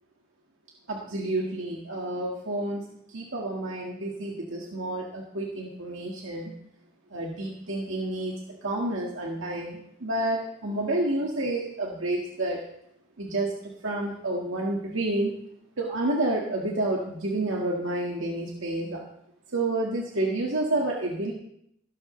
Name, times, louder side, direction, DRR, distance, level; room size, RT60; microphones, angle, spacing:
voice 1, 0.9-6.5 7.1-12.7 13.2-15.3 15.8-19.0 19.5-21.3, right 2 dB, 80° right, -2 dB, 1.9 m, -29 dB
16.0 x 12.5 x 3.3 m, 0.74 s
head